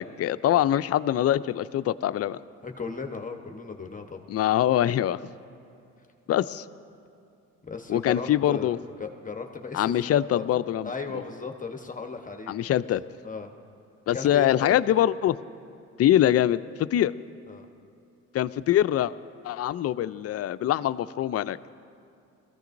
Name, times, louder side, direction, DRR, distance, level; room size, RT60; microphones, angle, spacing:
voice 1, 0.0-2.4 4.3-5.2 6.3-6.6 7.9-8.8 9.7-10.9 12.5-13.0 14.1-15.4 16.0-17.1 18.3-19.1 19.4-21.6, left 12 dB, 45° left, 13 dB, 0.5 m, -23 dB
voice 2, 2.6-4.2 7.7-8.7 9.0-10.4 10.8-12.8 13.2-13.5 14.1-14.8 17.5-17.7, left 4 dB, 25° left, 4 dB, 1.1 m, -36 dB
21.5 x 14.5 x 2.6 m, 2.5 s
supercardioid pair, 65°, 33 cm